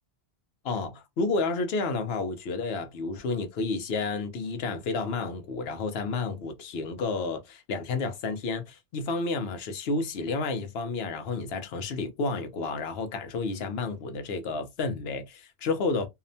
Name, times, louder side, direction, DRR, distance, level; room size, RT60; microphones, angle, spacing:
voice 1, 0.6-16.1, left 3 dB, 70° left, 0.9 m, -31 dB
2.8 x 2.1 x 2.6 m
omnidirectional pair, 1.1 m